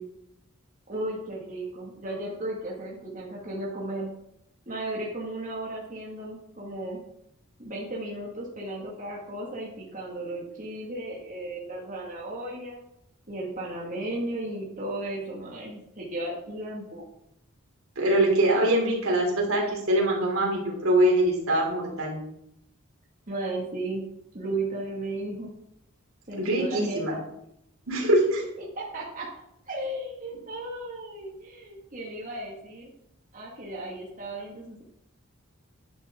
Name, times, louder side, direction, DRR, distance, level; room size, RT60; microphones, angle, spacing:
voice 1, 0.9-4.1 4.7-7.0 7.6-12.8 13.3-17.0 23.3-24.1 24.3-25.5 26.3-27.2 28.0-28.1 28.6-29.3 29.7-32.9 33.3-34.8, right 1 dB, 35° right, -4 dB, 2.3 m, -35 dB
voice 2, 18.0-22.2 26.4-27.1 27.9-28.4, right 1 dB, 75° right, -1 dB, 3.7 m, -23 dB
11.0 x 10.0 x 3.9 m, 0.78 s
head